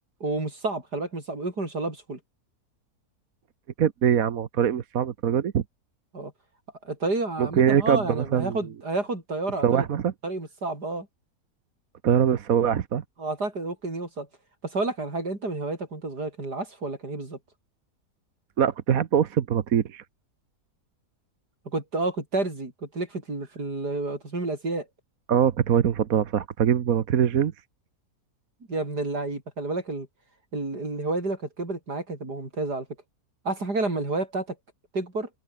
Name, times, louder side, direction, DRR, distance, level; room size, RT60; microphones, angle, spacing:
voice 1, 0.2-2.2 6.1-6.3 6.8-9.9 10.2-11.1 13.2-14.3 14.6-17.4 21.6-24.9 28.7-30.1 30.5-32.9 33.4-34.6 34.9-35.3, right 2 dB, 85° right, 6.4 m, -30 dB
voice 2, 3.8-5.6 7.4-8.6 9.6-10.1 12.0-13.0 18.6-20.0 25.3-27.5, right 8 dB, 60° right, 1.5 m, -23 dB
omnidirectional pair, 1.7 m